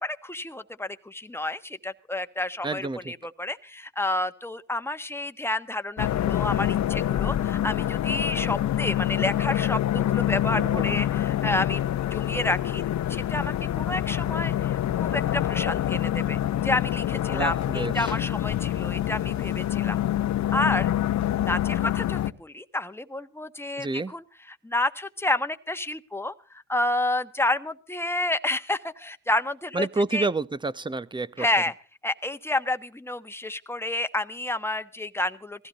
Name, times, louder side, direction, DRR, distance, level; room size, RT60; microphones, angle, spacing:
voice 1, 0.0-11.8 12.1-12.8 13.1-20.0 20.5-20.9 21.4-24.2 24.6-26.3 26.7-29.9 30.1-30.3 31.4-31.7 32.0-35.7, left 2 dB, 10° left, 1.3 m, -30 dB
voice 2, 2.6-3.1 10.6-11.0 17.3-18.1 23.8-24.1 29.7-31.5, right 3 dB, 15° right, 0.9 m, -29 dB
sound 1, 6.0-22.3, left 12 dB, 65° left, 1.0 m, -26 dB
20.0 x 15.5 x 4.1 m
cardioid pair, 90°, 30 cm